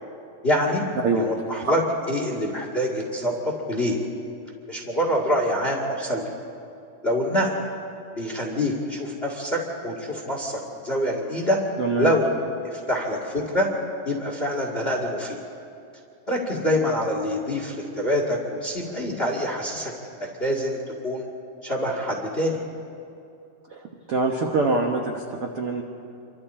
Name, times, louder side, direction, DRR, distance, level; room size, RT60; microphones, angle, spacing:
voice 1, 0.4-0.8 1.1-1.8 2.1-4.0 4.7-6.2 7.0-7.5 8.1-11.6 12.0-12.3 12.6-13.7 14.0-15.4 16.3-19.9 20.2-21.2 21.6-22.6, equal, 25° left, 0 dB, 1.5 m, -25 dB
voice 2, 11.8-12.1 23.7-23.8 24.1-25.8, right 3 dB, 70° right, 1 dB, 1.4 m, -24 dB
27.5 x 25.0 x 4.4 m, 2.6 s
omnidirectional pair, 4.5 m